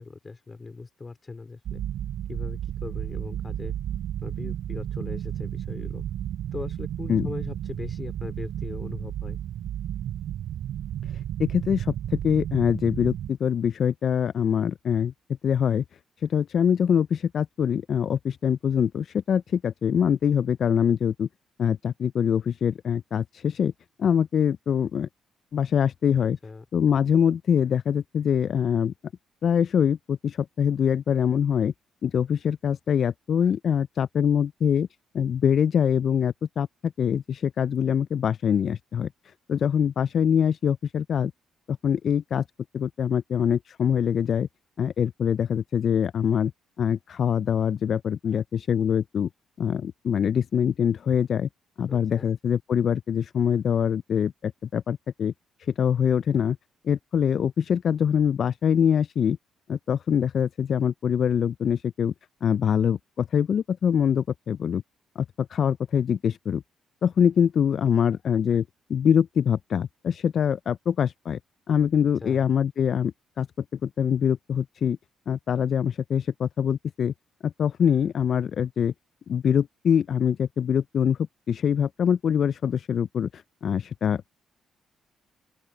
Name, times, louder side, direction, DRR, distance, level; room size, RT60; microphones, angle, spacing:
voice 1, 0.0-1.8 2.3-3.7 4.2-6.0 6.5-9.4 26.2-26.7 51.9-52.3 72.1-72.4, left 3 dB, 25° left, 3.7 m, -39 dB
sound 1, 1.7-13.3, right 11 dB, 75° right, 3.7 m, -33 dB
voice 2, 11.1-15.1 15.4-15.8 16.2-21.3 21.6-23.7 24.0-25.1 25.5-26.4 26.7-28.9 29.4-31.7 32.0-34.9 35.1-41.3 41.7-42.4 42.7-44.5 44.8-46.5 46.8-49.3 49.6-51.5 51.8-55.3 55.6-56.6 56.8-59.4 59.7-62.1 62.4-64.8 65.2-66.6 67.0-68.6 68.9-71.4 71.7-73.5 73.8-75.0 75.3-77.1 77.4-78.9 79.3-81.2 81.5-84.2, left 8 dB, 55° left, 0.3 m, -24 dB
open air
cardioid pair, 90°, 0 cm